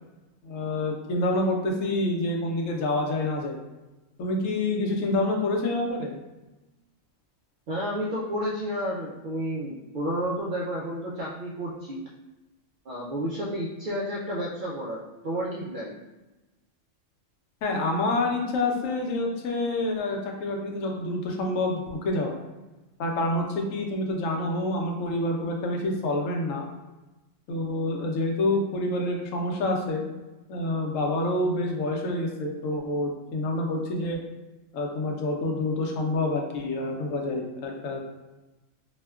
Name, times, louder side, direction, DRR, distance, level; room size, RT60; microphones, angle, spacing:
voice 1, 0.4-3.6 4.2-6.2 17.6-22.3 23.0-26.6 27.5-30.0 30.5-34.2 34.7-38.0, left 2 dB, 75° left, 1 dB, 1.0 m, -27 dB
voice 2, 7.7-12.0 12.9-16.0, equal, 70° right, -5 dB, 0.4 m, -31 dB
4.2 x 2.1 x 2.3 m, 1.1 s
omnidirectional pair, 1.4 m